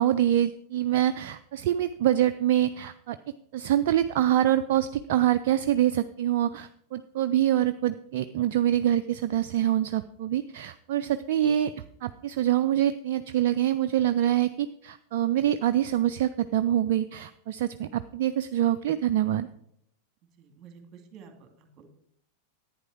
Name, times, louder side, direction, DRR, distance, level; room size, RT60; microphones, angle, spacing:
voice 1, 0.0-3.2 3.5-11.7 12.0-19.5, right 11 dB, 50° right, 11 dB, 0.4 m, -25 dB
voice 2, 20.4-21.9, right 6 dB, 30° right, 6 dB, 2.1 m, -50 dB
11.0 x 9.3 x 4.4 m, 0.72 s
figure-of-eight pair, 90°, 0 cm